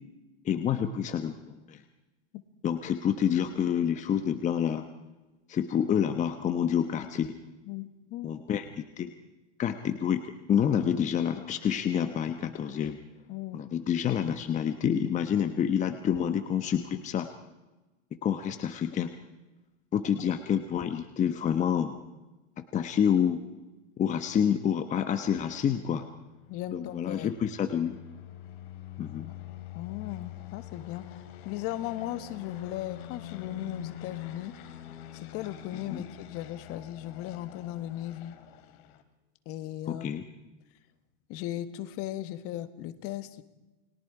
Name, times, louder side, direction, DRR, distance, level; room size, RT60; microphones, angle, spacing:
voice 1, 0.4-1.8 2.6-4.8 5.5-7.4 8.2-8.6 9.0-9.1 9.6-13.0 13.5-17.3 18.2-19.1 19.9-22.0 22.6-23.4 24.0-26.1 26.7-28.0 29.0-29.3 35.9-36.0 39.9-40.2, left 8 dB, 20° left, 8 dB, 1.1 m, -28 dB
voice 2, 7.6-8.3 13.3-13.6 26.5-27.3 29.3-29.4 29.7-34.5 35.1-38.4 39.4-40.1 41.3-43.4, left 13 dB, 40° left, 11 dB, 1.6 m, -37 dB
sound 1, 25.8-39.0, left 11 dB, 55° left, 2.7 m, -46 dB
29.5 x 21.0 x 4.9 m, 1.1 s
supercardioid pair, 140°, 37 cm